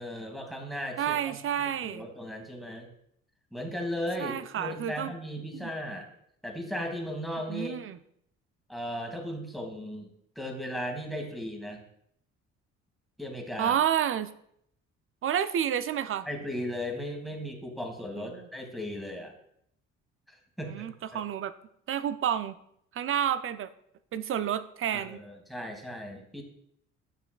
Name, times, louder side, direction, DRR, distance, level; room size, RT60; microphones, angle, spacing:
voice 1, 0.0-2.9 3.5-6.1 6.4-7.8 8.7-10.1 10.4-11.8 13.2-13.8 16.3-19.3 20.3-20.7 21.1-21.2 24.9-26.4, equal, ahead, 2 dB, 1.7 m, -36 dB
voice 2, 1.0-2.1 4.2-5.1 5.6-5.7 7.5-8.0 13.6-14.3 15.2-16.3 18.3-18.4 20.7-21.5 21.9-22.6 22.9-23.7 24.1-25.2, right 9 dB, 35° right, 13 dB, 0.4 m, -30 dB
8.8 x 5.8 x 2.3 m, 0.71 s
hypercardioid pair, 50°, 36 cm